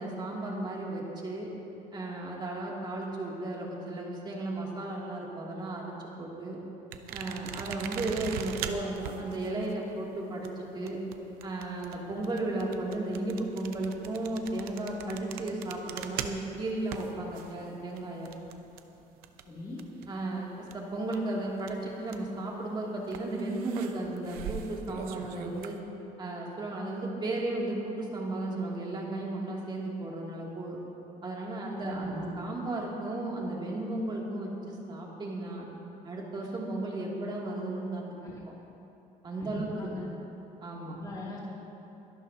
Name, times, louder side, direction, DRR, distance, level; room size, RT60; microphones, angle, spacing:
voice 1, 0.0-1.5 1.9-6.6 7.1-11.0 11.4-18.3 20.1-25.8 26.2-30.8 31.2-35.7 36.0-38.2 39.2-39.9 40.6-41.0, right 2 dB, 30° right, -3 dB, 2.6 m, -34 dB
sound 1, 6.9-20.3 20.5-22.4 23.1-25.8, right 9 dB, 90° right, 0.7 m, -42 dB
voice 2, 19.5-19.8 31.9-32.3 38.2-38.4 39.4-40.0 40.8-41.4, left 2 dB, 25° left, -6 dB, 2.7 m, -41 dB
24.0 x 11.5 x 2.8 m, 3.0 s
cardioid pair, 125°, 15 cm